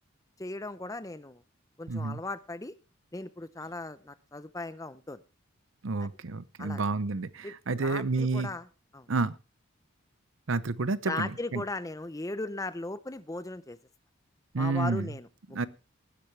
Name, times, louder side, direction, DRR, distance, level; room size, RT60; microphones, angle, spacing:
voice 1, 0.4-1.4 1.8-2.7 3.1-5.2 6.0-6.1 6.6-6.8 7.4-7.5 7.8-8.7 8.9-9.1 11.1-13.8 14.6-15.7, left 2 dB, 15° left, 0.6 m, -37 dB
voice 2, 1.9-2.2 5.8-8.5 9.1-9.3 10.5-11.6 14.5-15.1 15.5-15.7, right 3 dB, 65° right, 0.7 m, -30 dB
19.0 x 10.0 x 3.3 m
head